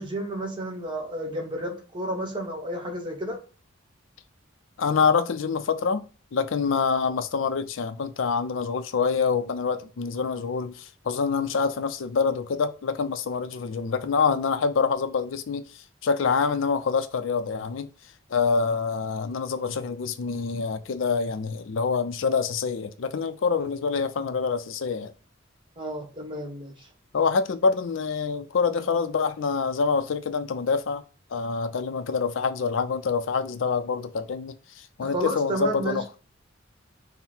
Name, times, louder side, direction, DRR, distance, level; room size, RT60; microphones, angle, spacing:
voice 1, 0.0-3.4 25.8-26.9 35.0-36.0, right 1 dB, 25° right, 1.2 m, -31 dB
voice 2, 4.8-6.1 6.3-15.6 16.0-17.9 18.3-25.1 27.1-31.0 31.3-36.0, left 5 dB, 75° left, 0.4 m, -26 dB
5.6 x 2.1 x 4.3 m
head